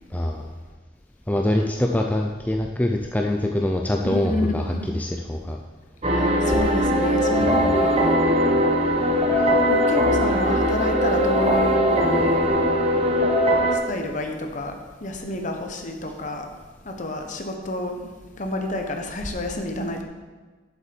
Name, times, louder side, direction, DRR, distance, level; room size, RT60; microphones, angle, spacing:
voice 1, 0.1-0.5 1.3-5.6 7.4-7.5 9.3-9.4, left 1 dB, 10° left, 2 dB, 0.5 m, -24 dB
voice 2, 4.0-4.9 6.1-8.1 9.7-12.3 13.7-14.7 15.0-16.5 16.8-18.1 18.4-20.0, left 1 dB, 40° left, 4 dB, 1.3 m, -29 dB
sound 1, 6.0-13.8, equal, 30° right, 1.3 m, -20 dB
8.2 x 7.3 x 7.1 m, 1.3 s
head